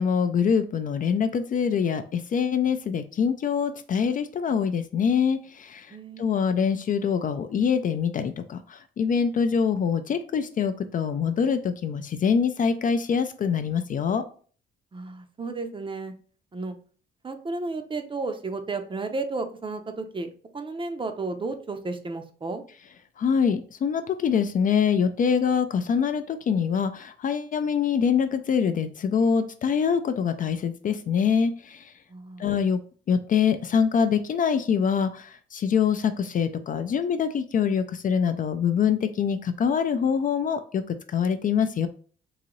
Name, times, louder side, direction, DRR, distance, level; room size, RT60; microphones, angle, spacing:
voice 1, 0.0-14.2 23.2-31.8 32.4-32.8 33.1-41.9, left 7 dB, 45° left, 9 dB, 0.4 m, -24 dB
voice 2, 5.9-6.2 14.9-16.1 16.5-16.7 17.2-20.3 20.5-22.6 32.1-32.5, right 3 dB, 25° right, 7 dB, 0.6 m, -33 dB
3.8 x 2.6 x 3.0 m, 0.43 s
cardioid pair, 90°, 20 cm